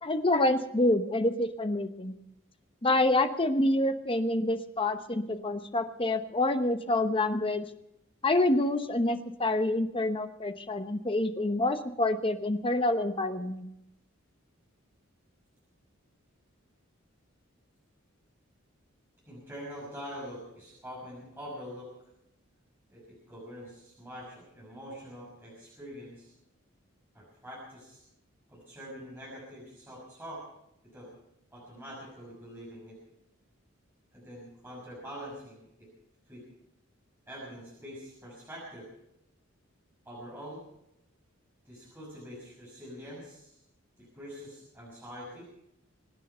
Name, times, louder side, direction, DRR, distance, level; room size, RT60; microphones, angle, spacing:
voice 1, 0.0-2.1 2.8-7.6 8.2-13.7, left 2 dB, 25° left, 8 dB, 1.0 m, -27 dB
voice 2, 19.3-21.9 22.9-26.3 27.1-28.0 28.5-30.4 30.9-31.1 31.5-33.0 34.1-35.9 36.3-36.4 37.3-38.9 40.0-40.6 41.6-43.6 44.0-45.5, equal, 10° right, -7 dB, 6.0 m, -44 dB
24.0 x 9.3 x 5.6 m, 0.81 s
head